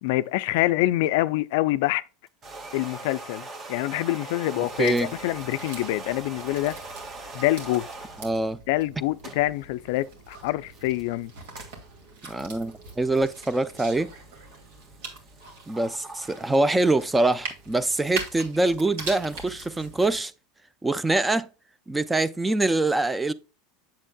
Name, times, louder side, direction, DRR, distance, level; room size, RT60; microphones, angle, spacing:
voice 1, 0.0-2.0 2.7-6.8 7.3-7.9 8.7-11.3, left 17 dB, 70° left, 0.4 m, -26 dB
sound 1, 2.3-8.3 8.9-19.4, right 3 dB, 35° right, 1.5 m, -43 dB
voice 2, 4.6-5.1 8.2-8.6 12.2-14.1 15.7-20.3 20.8-21.5 21.9-23.3, right 2 dB, 10° right, 0.5 m, -24 dB
sound 2, 4.7-20.2, right 3 dB, 75° right, 2.3 m, -42 dB
7.5 x 7.1 x 2.2 m
hypercardioid pair, 100°, 0 cm